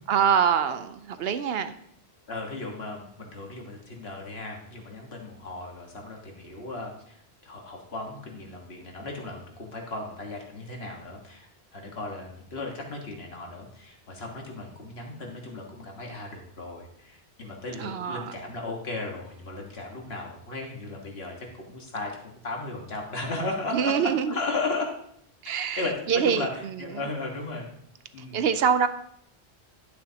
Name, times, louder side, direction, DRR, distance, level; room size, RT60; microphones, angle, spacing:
voice 1, 0.1-1.7 17.8-18.3 23.7-24.3 25.4-27.0 28.3-28.9, right 7 dB, 70° right, 11 dB, 0.8 m, -25 dB
voice 2, 2.3-7.2 7.4-25.0 25.8-27.7 28.1-28.4, left 2 dB, 70° left, 1 dB, 1.8 m, -35 dB
10.5 x 8.8 x 2.9 m, 0.70 s
omnidirectional pair, 1.1 m